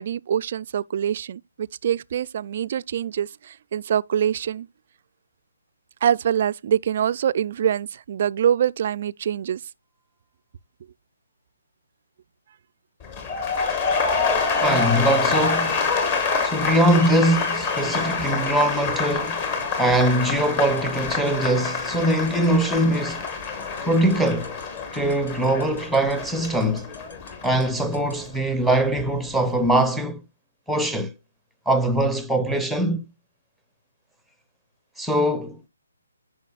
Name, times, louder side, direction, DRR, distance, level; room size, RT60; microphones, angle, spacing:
voice 1, 0.0-4.7 6.0-9.6, right 9 dB, 45° right, 0.3 m, -24 dB
sound 1, 13.0-29.1 29.4-29.8, left 4 dB, 30° left, 1.7 m, -27 dB
voice 2, 14.6-15.8 16.4-19.5 19.8-23.3 23.8-24.5 24.9-26.9 27.4-30.2 30.7-31.1 31.7-33.0 35.0-35.6, right 1 dB, ahead, 0.7 m, -22 dB
sound 2, 17.4-28.1, left 2 dB, 65° left, 4.4 m, -44 dB
10.5 x 5.2 x 2.4 m
figure-of-eight pair, 145°, 0 cm